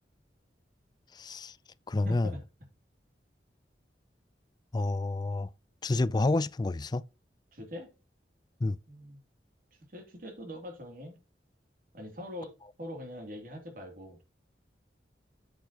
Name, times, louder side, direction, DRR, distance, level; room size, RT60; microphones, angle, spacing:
voice 1, 1.1-1.6 1.9-2.3 4.7-5.5 5.8-7.0 8.6-8.8, left 2 dB, 25° left, 0.4 m, -29 dB
voice 2, 2.0-2.4 7.5-7.9 8.9-9.2 9.9-11.2 11.9-14.2, left 1 dB, 50° right, 2.7 m, -42 dB
8.3 x 8.3 x 2.9 m
head